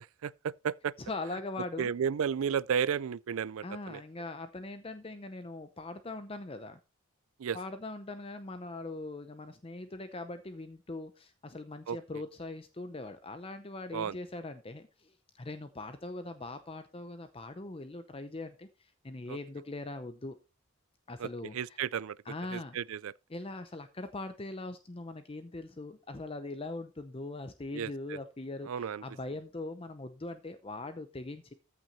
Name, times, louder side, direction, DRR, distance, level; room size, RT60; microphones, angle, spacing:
voice 1, 0.0-0.9 1.8-4.0 7.4-7.6 11.9-12.0 13.9-14.2 19.3-19.4 21.2-21.3 21.5-22.2 22.5-23.1 27.7-28.2 28.7-29.0, right 7 dB, 75° right, 0.4 m, -33 dB
voice 2, 1.0-1.9 3.6-6.8 7.5-20.4 21.1-21.8 22.3-22.8 23.3-31.5, left 2 dB, 25° left, 0.7 m, -41 dB
14.0 x 6.0 x 4.1 m
head